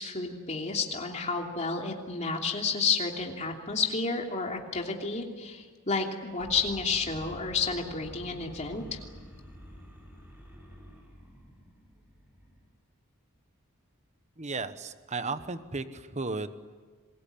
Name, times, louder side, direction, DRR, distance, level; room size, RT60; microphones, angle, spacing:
voice 1, 0.0-9.0, left 4 dB, 30° left, 1 dB, 3.0 m, -31 dB
sound 1, 6.4-12.7, equal, 10° right, 7.4 m, -49 dB
voice 2, 14.4-16.6, right 3 dB, 30° right, 11 dB, 1.2 m, -34 dB
27.5 x 21.5 x 8.6 m, 1.5 s
head